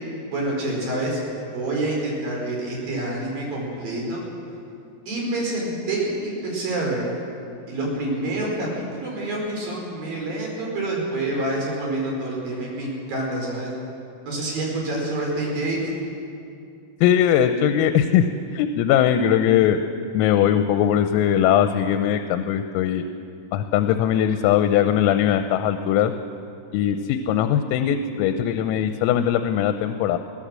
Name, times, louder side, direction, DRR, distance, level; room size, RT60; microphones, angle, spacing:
voice 1, 0.3-1.2 1.5-4.2 5.1-7.1 7.7-8.7 8.9-13.7 14.3-15.8, right 2 dB, 45° right, -2 dB, 6.0 m, -27 dB
voice 2, 17.0-18.2 18.5-19.9 20.2-23.0 23.5-26.1 26.7-30.2, left 10 dB, 85° left, 8 dB, 3.5 m, -20 dB
22.0 x 17.0 x 7.5 m, 2.6 s
omnidirectional pair, 6.0 m